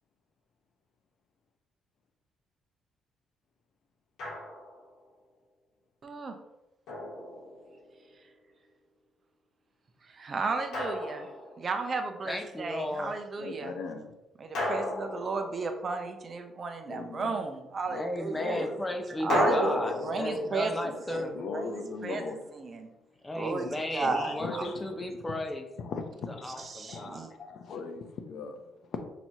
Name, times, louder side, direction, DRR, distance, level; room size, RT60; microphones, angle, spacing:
Drum, 4.2-4.9 6.9-8.0 10.7-11.9 14.5-16.2 19.3-22.3, left 1 dB, 80° left, 1.5 m, -33 dB
voice 1, 6.0-6.4 10.0-11.3 11.6-13.7 14.4-18.6 19.2-19.8 20.0-20.7 21.1-21.7 22.0-22.2 22.6-22.9 23.4-23.7 23.9-24.6 26.7-27.3, right 4 dB, 40° right, 5 dB, 0.6 m, -33 dB
voice 2, 12.2-13.2 17.9-21.4 23.2-25.7 26.3-27.3, left 1 dB, 15° left, 4 dB, 0.6 m, -35 dB
voice 3, 13.4-14.1 16.9-17.4 17.9-18.0 18.3-18.8 19.2-19.3 20.2-20.4 20.8-22.4 23.6-23.7 24.0-24.9 25.8-29.0, left 4 dB, 65° left, 7 dB, 0.6 m, -39 dB
5.8 x 2.9 x 2.7 m, 0.98 s
cardioid pair, 105°, 0 cm